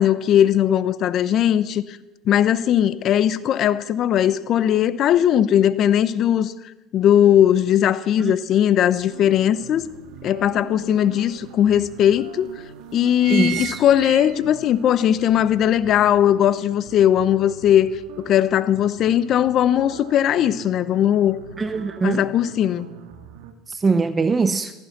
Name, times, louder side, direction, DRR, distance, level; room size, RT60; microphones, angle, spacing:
voice 1, 0.0-2.0 2.3-6.5 6.9-9.8 10.2-12.5 12.9-17.9 18.2-21.4 22.0-22.9, left 10 dB, 50° left, 0.9 m, -19 dB
sound 1, 9.0-9.1 9.6-10.7 11.4-11.5 11.7-11.8 12.5-12.7 13.0-14.8 15.2-15.3, right 14 dB, 65° right, 0.9 m, -33 dB
sound 2, 9.1-23.5, right 7 dB, 80° right, 1.8 m, -43 dB
voice 2, 13.3-13.8 21.6-22.2 23.7-24.7, right 4 dB, 20° right, 0.7 m, -22 dB
15.5 x 15.0 x 6.0 m
supercardioid pair, 110°, 0 cm